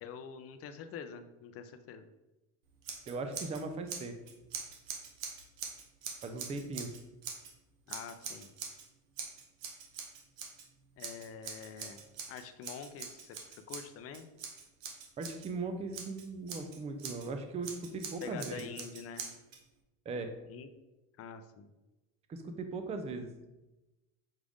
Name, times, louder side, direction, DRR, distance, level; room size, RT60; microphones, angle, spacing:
voice 1, 0.0-2.1 7.9-8.5 11.0-14.3 18.2-19.4 20.5-20.7 21.2-21.7, left 7 dB, 40° left, 8 dB, 0.5 m, -46 dB
Scissors, 2.8-3.6 3.9-7.5 7.9-8.9 9.2-10.7 11.0-15.5 15.9-17.3 17.6-19.6, right 6 dB, 80° right, 1.1 m, -44 dB
voice 2, 3.1-4.2 6.2-6.9 15.2-18.7 20.1-20.4 22.3-23.3, right 3 dB, 20° right, 7 dB, 0.4 m, -39 dB
6.3 x 2.4 x 3.4 m, 1.0 s
supercardioid pair, 120°, 39 cm